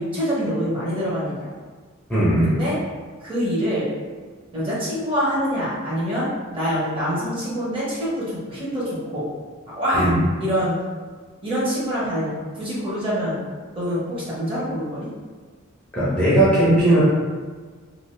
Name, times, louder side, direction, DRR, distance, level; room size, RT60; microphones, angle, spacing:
voice 1, 0.0-1.5 2.4-2.7 3.2-3.9 4.5-9.3 9.8-10.1 10.4-10.7 11.4-12.3 12.6-13.4 13.7-15.1, equal, 25° right, -8 dB, 0.9 m, -25 dB
voice 2, 2.1-2.5 9.9-10.2 15.9-17.0, right 1 dB, 5° left, -10 dB, 0.7 m, -17 dB
2.7 x 2.5 x 3.2 m, 1.5 s
head